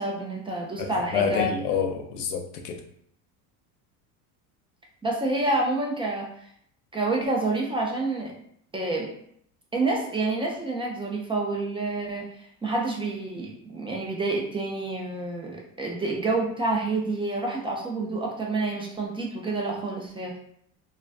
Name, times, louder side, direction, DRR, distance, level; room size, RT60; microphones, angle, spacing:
voice 1, 0.0-1.5 5.0-6.3 6.9-8.3 8.7-9.1 9.7-12.3 12.6-20.4, right 2 dB, 15° right, -2 dB, 0.4 m, -28 dB
voice 2, 0.8-2.8, left 6 dB, 90° left, 4 dB, 0.5 m, -28 dB
2.3 x 2.2 x 2.4 m, 0.68 s
hypercardioid pair, 85°, 43 cm